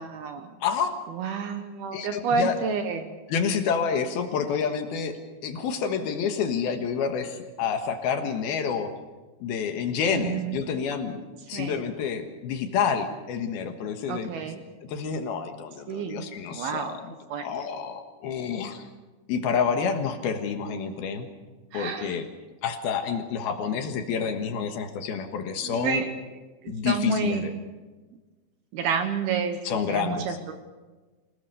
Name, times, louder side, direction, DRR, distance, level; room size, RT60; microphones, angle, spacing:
voice 1, 0.0-0.5 1.2-3.1 10.1-10.6 11.5-11.8 14.1-14.6 15.9-16.2 16.5-17.0 17.3-17.4 21.7-22.2 25.6-26.1 26.6-27.4 28.7-29.6 29.9-30.6, right 5 dB, 70° right, 8 dB, 2.6 m, -29 dB
voice 2, 0.6-1.0 1.9-2.6 3.3-5.2 5.4-8.9 9.4-11.2 11.5-14.5 14.8-17.1 17.4-18.9 19.3-21.3 21.7-22.3 22.6-26.0 26.7-27.5 29.6-30.4, left 6 dB, 65° left, 6 dB, 2.9 m, -28 dB
26.0 x 19.0 x 6.7 m, 1.3 s
omnidirectional pair, 5.5 m